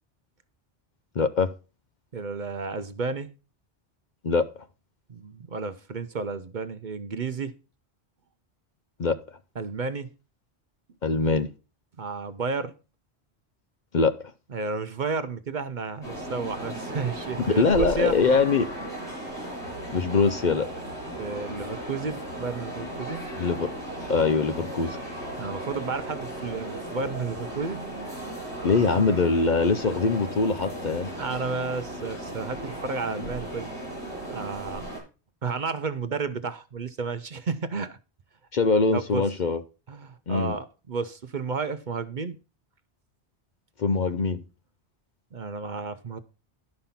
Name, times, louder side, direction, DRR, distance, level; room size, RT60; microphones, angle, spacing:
voice 1, 1.2-1.5 4.2-4.5 9.0-9.1 11.0-11.5 13.9-14.1 17.5-18.7 19.9-20.7 23.4-23.7 24.1-25.0 28.6-31.1 38.5-39.6 40.3-40.5 43.8-44.4, left 4 dB, 50° left, 0.7 m, -23 dB
voice 2, 2.1-3.3 5.1-7.6 9.6-10.1 12.0-12.7 14.5-18.2 21.2-23.3 25.4-27.8 31.2-33.7 34.3-34.9 35.4-38.0 38.9-39.3 39.9-42.4 45.3-46.2, right 4 dB, 50° right, 0.7 m, -32 dB
sound 1, 16.0-35.0, right 1 dB, 85° left, 6.7 m, -36 dB
12.0 x 5.5 x 5.7 m
omnidirectional pair, 1.1 m